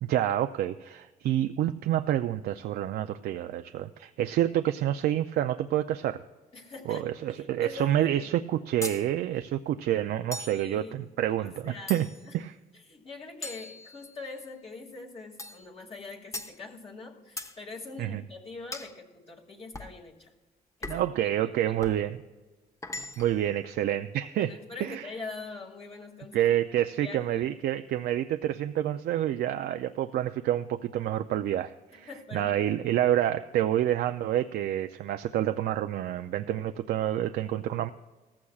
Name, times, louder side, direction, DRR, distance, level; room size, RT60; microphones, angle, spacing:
voice 1, 0.0-6.2 6.9-12.1 12.3-12.6 18.0-18.2 20.9-22.2 23.2-24.5 24.8-25.1 26.3-37.9, right 12 dB, 75° right, 8 dB, 0.5 m, -28 dB
voice 2, 6.5-8.3 10.5-10.9 11.4-12.0 12.2-12.3 12.7-20.3 20.8-21.0 21.4-21.8 24.4-26.5 27.0-27.5 31.9-32.5, left 3 dB, 40° left, -1 dB, 2.3 m, -43 dB
sound 1, 8.8-9.1 10.3-10.7 11.9-12.3 13.4-14.3 15.4-15.7 16.3-16.6 17.4-17.6 18.7-19.0 19.7-20.0 20.8-21.2 21.8-22.0 22.8-23.4, left 2 dB, 20° left, 1.0 m, -39 dB
17.5 x 14.5 x 2.4 m, 1.3 s
cardioid pair, 95°, 16 cm